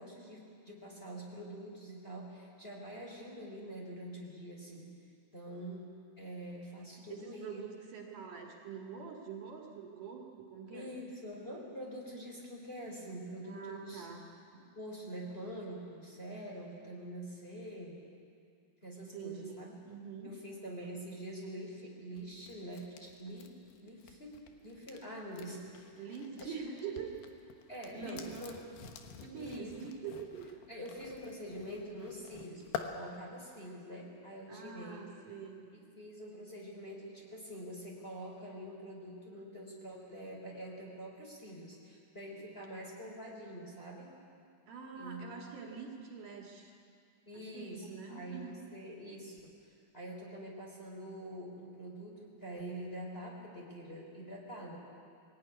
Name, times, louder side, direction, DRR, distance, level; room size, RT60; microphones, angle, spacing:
voice 1, 0.0-4.9 5.3-7.6 10.7-14.1 14.7-18.0 18.8-19.8 20.2-23.6 23.8-24.3 24.6-25.6 26.4-27.0 27.7-28.7 29.4-29.7 30.7-35.0 35.7-44.1 44.9-45.5 47.3-49.5 49.9-54.8, right 1 dB, 15° left, -2 dB, 3.6 m, -45 dB
voice 2, 7.1-10.9 13.4-14.3 19.0-20.3 26.0-27.2 27.9-28.3 29.2-30.5 34.5-35.7 44.7-46.8 47.3-48.6, right 6 dB, 65° right, 0 dB, 3.5 m, -45 dB
sound 1, 22.2-26.5 26.8-32.9, left 8 dB, 90° left, 3.2 m, -48 dB
22.0 x 17.0 x 9.7 m, 2.3 s
omnidirectional pair, 4.3 m